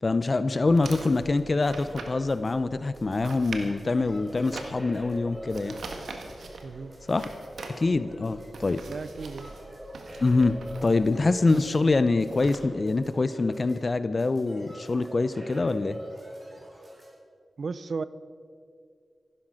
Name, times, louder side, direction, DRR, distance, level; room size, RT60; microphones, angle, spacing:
voice 1, 0.0-5.8 7.1-7.3 7.8-8.8 10.2-16.0, left 3 dB, 45° left, 13 dB, 0.6 m, -25 dB
sound 1, 0.7-12.6, right 3 dB, 90° right, 1.7 m, -43 dB
sound 2, 1.1-17.1, equal, 30° right, 4.8 m, -45 dB
voice 2, 6.6-6.9 8.9-9.5 17.6-18.0, right 4 dB, 70° right, 15 dB, 0.6 m, -34 dB
15.0 x 12.0 x 6.3 m, 2.3 s
cardioid pair, 70°, 0 cm